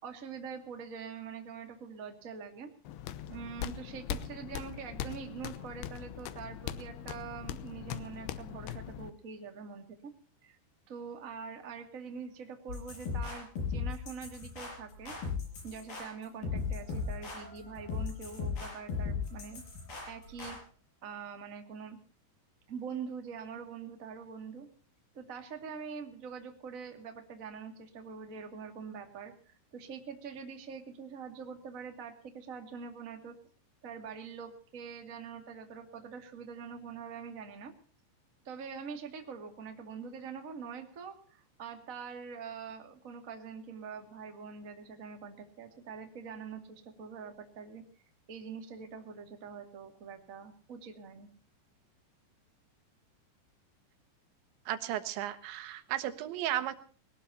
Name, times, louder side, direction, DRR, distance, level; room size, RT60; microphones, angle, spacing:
voice 1, 0.0-2.7 3.3-10.1 10.4-10.6 10.9-15.1 15.6-19.6 20.1-20.6 21.0-22.0 22.7-24.7 25.1-33.4 33.8-37.7 38.4-47.8 48.3-51.3, right 6 dB, 30° right, 4 dB, 1.6 m, -44 dB
sound 1, 2.8-9.1, left 10 dB, 75° left, 2.7 m, -41 dB
sound 2, 12.7-20.6, left 5 dB, 55° left, 7.7 m, -37 dB
voice 2, 54.7-56.8, right 12 dB, 90° right, 10 dB, 3.6 m, -34 dB
21.5 x 19.0 x 2.9 m, 0.43 s
omnidirectional pair, 5.1 m